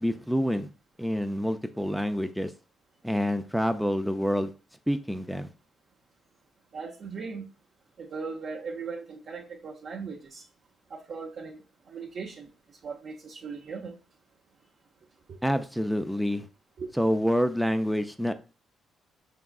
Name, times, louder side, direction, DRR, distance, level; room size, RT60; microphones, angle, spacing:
voice 1, 0.0-0.7 1.0-2.5 3.0-4.5 4.9-5.5 15.4-16.5 16.9-18.3, equal, ahead, 8 dB, 0.3 m, -27 dB
voice 2, 6.7-7.4 8.0-10.5 10.9-14.0 15.3-15.4 16.8-16.9, right 5 dB, 55° right, -2 dB, 0.6 m, -39 dB
4.9 x 3.6 x 2.3 m, 0.34 s
cardioid pair, 90°, 0 cm